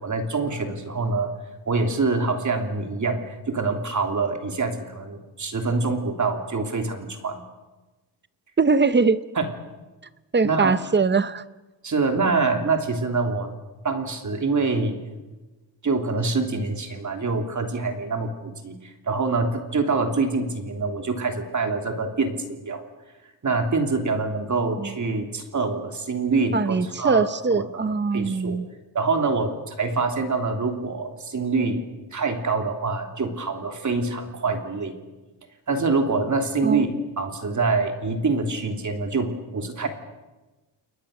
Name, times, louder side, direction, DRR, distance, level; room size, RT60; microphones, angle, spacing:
voice 1, 0.0-1.3 1.7-7.4 9.3-9.5 10.4-10.8 11.8-13.5 13.8-15.0 15.8-22.8 23.4-28.6 28.9-31.8 32.1-35.0 35.7-36.9 37.2-39.9, right 3 dB, 40° right, 4 dB, 3.1 m, -25 dB
voice 2, 8.6-9.2 10.3-11.4 24.8-24.9 26.5-28.7 36.6-36.9, right 4 dB, 25° right, 14 dB, 0.8 m, -22 dB
29.5 x 22.0 x 6.7 m, 1.2 s
wide cardioid pair, 155°, 45 cm